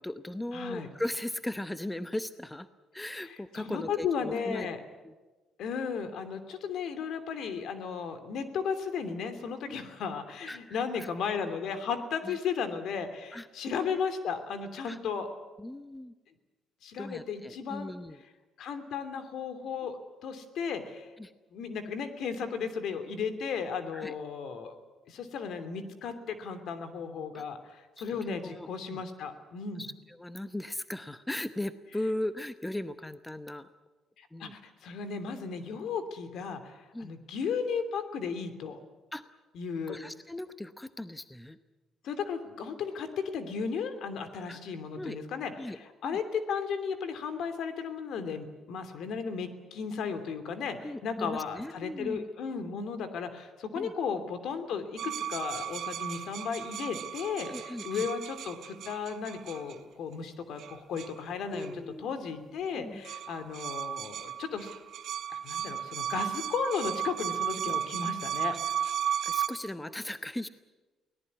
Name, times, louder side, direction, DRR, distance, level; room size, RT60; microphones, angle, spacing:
voice 1, 0.0-2.7 2.9-4.7 5.0-5.1 9.7-9.9 10.5-11.1 12.2-12.4 13.3-14.0 14.9-15.0 15.6-16.1 17.0-18.2 21.2-21.3 23.9-24.1 27.3-27.4 28.0-29.0 29.8-33.7 34.3-34.5 36.9-37.1 39.1-39.2 39.9-41.6 44.5-44.6 44.9-45.2 45.6-45.8 46.0-46.2 50.8-52.2 53.7-53.9 57.4-58.1 61.5-62.1 62.8-63.0 68.5-68.6 69.2-70.5, left 1 dB, 10° left, 11 dB, 0.9 m, -38 dB
voice 2, 0.5-0.9 3.2-4.8 5.6-15.3 16.8-17.9 18.6-20.0 20.2-21.1 21.5-24.8 25.1-29.9 34.2-38.8 39.5-40.0 42.0-61.7 62.0-64.7 65.3-68.5, left 6 dB, 70° left, 10 dB, 2.9 m, -35 dB
sound 1, 55.0-59.8 60.6-61.2 61.5-61.7 62.7-62.8 63.0-69.5, right 9 dB, 60° right, 2.4 m, -35 dB
24.0 x 18.0 x 9.6 m, 1.2 s
cardioid pair, 120°, 0 cm